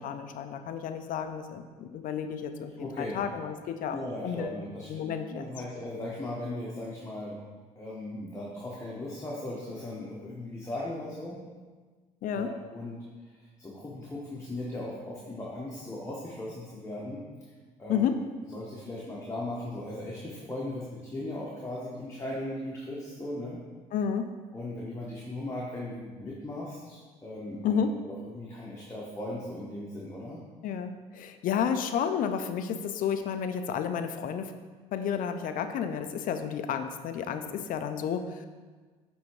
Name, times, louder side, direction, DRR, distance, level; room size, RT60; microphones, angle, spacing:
voice 1, 0.0-4.6 4.9-5.5 12.2-12.5 17.9-18.2 23.9-24.3 27.6-27.9 30.6-34.5 34.9-38.5, left 7 dB, 60° left, 8 dB, 0.5 m, -31 dB
voice 2, 2.8-3.2 3.9-7.4 7.7-11.4 12.3-13.0 13.2-17.2 17.8-18.1 18.5-23.6 24.5-27.8 28.2-30.4, left 1 dB, 20° left, -6 dB, 1.2 m, -38 dB
8.5 x 3.5 x 3.2 m, 1.4 s
supercardioid pair, 70°, 16 cm